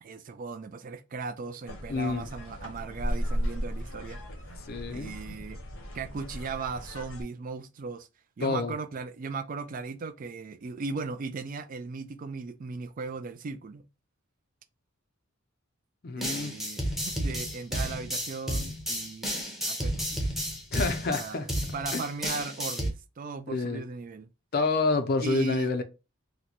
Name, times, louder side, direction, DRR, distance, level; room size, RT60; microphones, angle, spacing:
voice 1, 0.0-4.2 4.5-4.6 4.9-5.6 5.9-8.1 8.4-13.8 16.2-20.2 21.1-21.5 21.7-24.3 25.2-25.7, right 4 dB, 40° right, 0.3 m, -37 dB
sound 1, 1.7-7.2, equal, 70° left, 0.9 m, -35 dB
voice 2, 1.9-2.3 4.7-5.2 8.4-8.7 16.0-16.6 20.7-21.5 21.9-22.0 23.5-23.8 24.5-25.8, left 3 dB, 45° left, 0.5 m, -28 dB
sound 2, 16.2-22.9, equal, ahead, 0.7 m, -32 dB
3.0 x 2.1 x 3.9 m
head